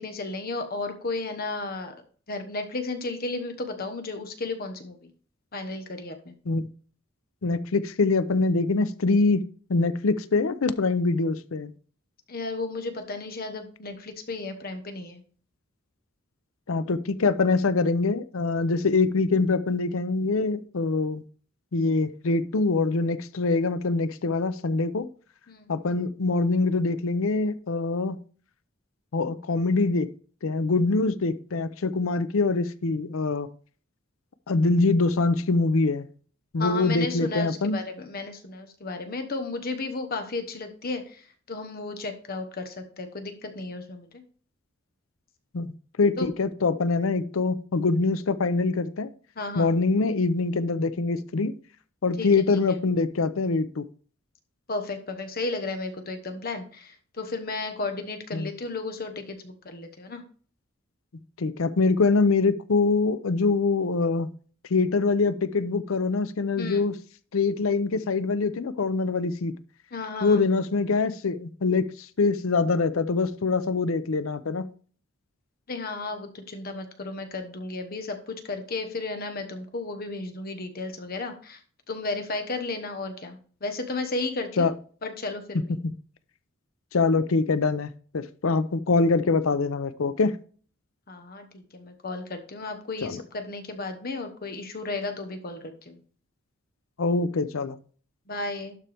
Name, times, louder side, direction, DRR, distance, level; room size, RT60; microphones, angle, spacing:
voice 1, 0.0-1.9 2.3-5.1 5.5-6.4 12.3-15.2 25.5-25.7 36.6-44.2 46.2-46.3 49.4-49.7 52.2-52.3 54.7-60.2 66.6-66.9 69.9-70.4 75.7-81.6 81.9-84.7 85.0-85.6 91.1-96.0 98.3-98.8, left 3 dB, 45° left, 1.1 m, -34 dB
voice 2, 7.4-9.4 9.7-11.7 16.7-21.2 21.7-25.1 25.7-28.2 29.1-30.1 30.4-33.5 34.5-36.1 36.5-37.8 45.5-45.7 46.0-49.1 49.5-51.5 52.0-53.8 58.3-58.5 61.4-64.3 64.7-66.9 67.3-69.5 70.2-71.9 72.2-74.7 84.6-84.7 86.9-87.9 88.1-90.4 93.0-93.2 97.0-97.8, left 3 dB, 85° left, 0.6 m, -24 dB
12.0 x 4.4 x 3.4 m
head